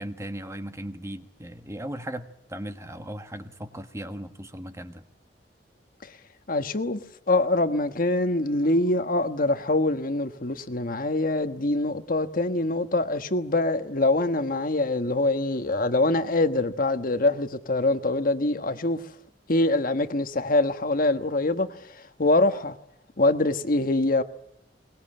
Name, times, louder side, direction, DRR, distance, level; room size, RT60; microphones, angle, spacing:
voice 1, 0.0-5.0, right 1 dB, 15° right, 1.3 m, -37 dB
voice 2, 6.5-7.0 7.3-19.0 19.5-22.7 23.2-24.2, left 2 dB, 55° left, 1.4 m, -24 dB
22.5 x 20.5 x 8.9 m
head